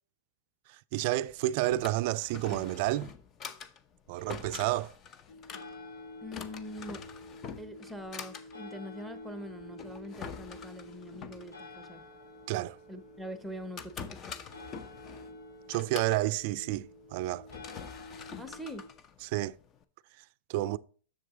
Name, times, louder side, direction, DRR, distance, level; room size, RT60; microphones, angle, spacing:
voice 1, 0.9-3.1 4.1-4.9 12.5-12.8 15.7-17.5 19.2-19.6 20.5-20.8, right 16 dB, 50° right, 0.3 m, -30 dB
Drawer open or close, 1.3-19.8, left 6 dB, 30° left, 0.7 m, -47 dB
sound 1, 5.3-18.9, left 2 dB, 80° left, 2.3 m, -49 dB
voice 2, 6.2-7.0 7.6-12.0 12.9-14.3 18.4-18.8, equal, ahead, 1.0 m, -43 dB
7.6 x 6.6 x 3.8 m
hypercardioid pair, 110°, 0 cm